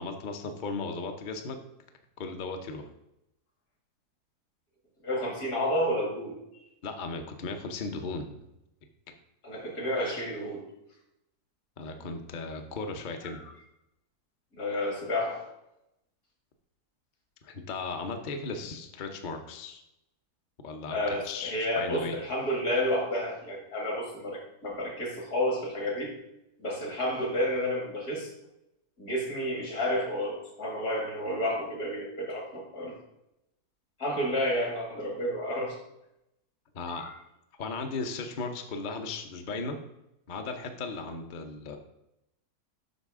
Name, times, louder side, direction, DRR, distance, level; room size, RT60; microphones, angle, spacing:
voice 1, 0.0-1.6 2.2-2.9 6.8-8.3 9.1-9.2 11.8-13.4 17.4-19.8 20.6-22.1 36.7-37.1 37.6-39.8 40.3-41.8, left 3 dB, 50° left, 5 dB, 0.6 m, -36 dB
voice 2, 5.0-6.4 9.4-10.6 14.5-15.4 20.9-26.1 26.6-28.3 29.0-32.9 34.0-35.8 36.9-37.1, equal, 65° left, -1 dB, 2.6 m, -30 dB
8.1 x 5.8 x 3.6 m, 0.86 s
omnidirectional pair, 1.7 m